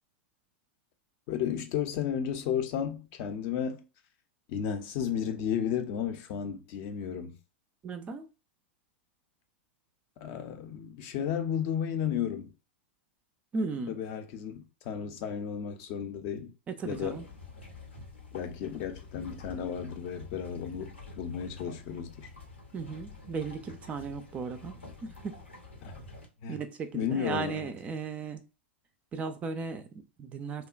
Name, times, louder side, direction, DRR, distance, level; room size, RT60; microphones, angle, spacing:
voice 1, 1.3-3.8 4.5-7.4 10.2-12.5 13.9-16.5 16.8-17.2 18.3-22.3 25.8-26.0 26.4-26.6 26.9-27.7, left 8 dB, 45° left, 0.5 m, -33 dB
voice 2, 7.8-8.3 13.5-14.0 16.7-17.3 22.7-25.4 26.5-28.4 29.1-30.7, right 4 dB, 20° right, 0.3 m, -36 dB
sound 1, 16.8-26.3, left 3 dB, 90° left, 0.7 m, -48 dB
2.7 x 2.1 x 2.3 m
figure-of-eight pair, 100°, 6 cm